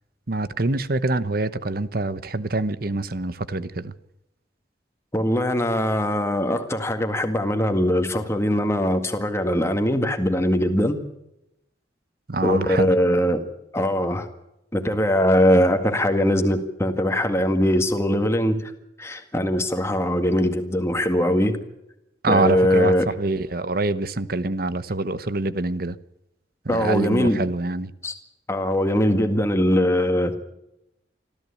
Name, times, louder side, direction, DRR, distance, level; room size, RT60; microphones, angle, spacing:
voice 1, 0.3-3.9 12.3-12.9 22.2-26.0 26.6-27.9, right 2 dB, 55° right, 1.0 m, -25 dB
voice 2, 5.1-11.0 12.4-13.4 13.7-14.3 14.7-18.7 19.0-21.6 22.3-23.1 26.7-27.4 28.0-28.1 28.5-30.4, equal, 15° left, 1.9 m, -21 dB
25.5 x 14.0 x 8.5 m
head